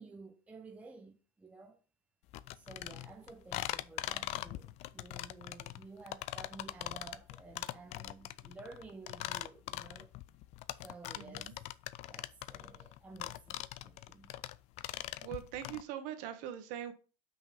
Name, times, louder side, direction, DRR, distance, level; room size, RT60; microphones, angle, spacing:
voice 1, 0.0-1.8 2.5-10.1 10.8-11.6 12.1-14.4, right 3 dB, 10° right, 0.7 m, -53 dB
sound 1, 2.3-15.8, left 16 dB, 40° left, 0.4 m, -41 dB
voice 2, 11.1-11.5 15.2-16.9, right 11 dB, 55° right, 1.4 m, -42 dB
6.0 x 5.1 x 5.4 m
supercardioid pair, 145°, 17 cm